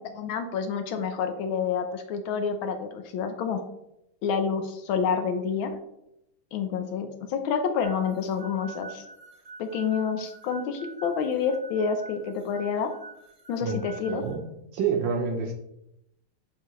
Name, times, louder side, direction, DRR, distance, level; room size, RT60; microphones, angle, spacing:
voice 1, 0.0-3.6 4.2-5.8 6.5-9.0 9.6-12.9 13.5-14.2, left 6 dB, 75° left, 7 dB, 1.4 m, -28 dB
sound 1, 7.8-14.3, right 4 dB, 35° right, 0.6 m, -46 dB
voice 2, 14.1-14.5 14.7-15.5, right 6 dB, 70° right, 3 dB, 1.2 m, -27 dB
6.6 x 4.8 x 3.0 m, 0.83 s
omnidirectional pair, 2.4 m